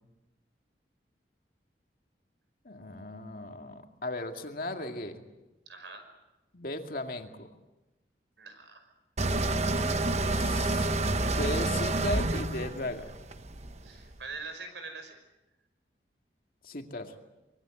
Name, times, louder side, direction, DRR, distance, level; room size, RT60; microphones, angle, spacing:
voice 1, 2.7-5.2 6.5-7.5 10.3-10.9 11.4-13.1 16.6-17.1, left 2 dB, 50° left, 4 dB, 2.2 m, -36 dB
voice 2, 5.7-6.0 8.4-8.9 13.8-15.2, right 4 dB, 85° right, 7 dB, 5.6 m, -43 dB
sound 1, 9.2-14.1, right 2 dB, 40° right, 1.0 m, -29 dB
24.5 x 22.0 x 7.8 m, 1.0 s
head